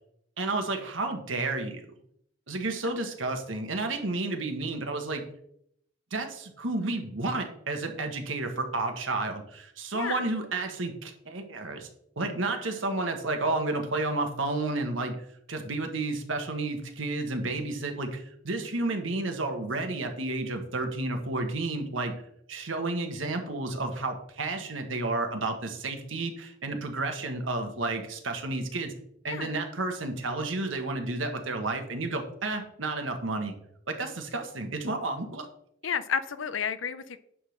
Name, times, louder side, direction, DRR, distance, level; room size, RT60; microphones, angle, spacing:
voice 1, 0.4-1.8 2.5-5.2 6.1-11.9 12.2-15.1 15.5-22.1 22.5-28.9 29.2-33.5 33.9-35.5, right 2 dB, 80° right, 5 dB, 1.4 m, -31 dB
voice 2, 35.8-37.2, left 7 dB, 80° left, 12 dB, 0.6 m, -31 dB
10.0 x 3.8 x 6.5 m, 0.73 s
head